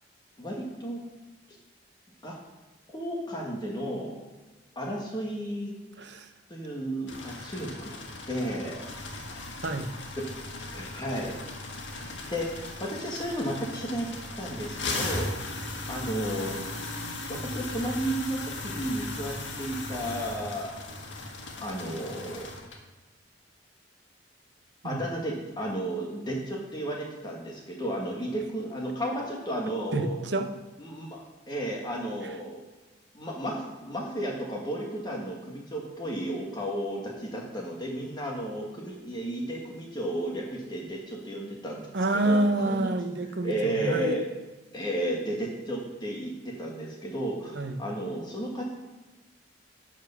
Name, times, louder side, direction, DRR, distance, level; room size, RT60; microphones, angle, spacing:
voice 1, 0.4-1.0 2.2-2.4 2.9-4.1 4.7-5.7 6.5-7.9 8.3-8.8 9.3-9.4 10.2-10.3 10.7-11.4 11.9-14.1 14.4-15.3 15.9-16.6 17.3-20.7 21.6-22.5 24.8-30.2 30.8-32.6 33.1-41.9 42.1-42.9 43.2-44.3 44.7-48.7, right 1 dB, 25° left, -2 dB, 1.6 m, -33 dB
voice 2, 6.0-6.3 9.6-9.9 24.8-25.0 29.9-30.5 41.9-44.2 47.5-47.8, right 2 dB, 65° right, 7 dB, 0.9 m, -28 dB
sound 1, 7.1-22.8, left 2 dB, 85° left, 1.5 m, -37 dB
11.0 x 4.4 x 7.0 m, 1.2 s
head